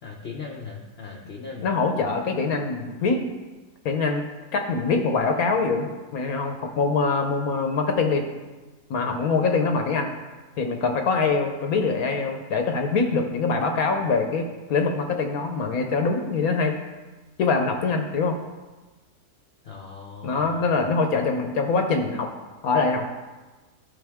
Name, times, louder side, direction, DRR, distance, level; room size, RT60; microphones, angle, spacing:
voice 1, 0.0-1.7 19.6-20.8, left 4 dB, 45° left, -1 dB, 0.9 m, -39 dB
voice 2, 1.6-3.2 3.8-4.2 4.5-8.2 8.9-10.1 10.6-16.8 17.4-18.4 20.2-22.3 22.6-23.0, left 4 dB, 65° left, 5 dB, 1.2 m, -24 dB
12.5 x 5.8 x 3.5 m, 1.2 s
omnidirectional pair, 1.7 m